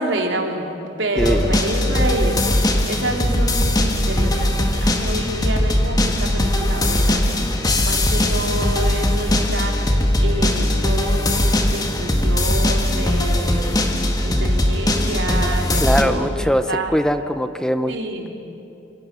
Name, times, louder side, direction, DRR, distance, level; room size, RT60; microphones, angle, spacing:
voice 1, 0.0-13.9 14.2-16.9 17.9-18.3, right 1 dB, 90° right, 1 dB, 3.4 m, -28 dB
sound 1, 1.2-16.0, left 1 dB, 20° left, 1.8 m, -19 dB
voice 2, 1.2-1.5 15.7-17.9, equal, 5° left, 9 dB, 0.6 m, -21 dB
27.5 x 23.5 x 6.9 m, 2.9 s
head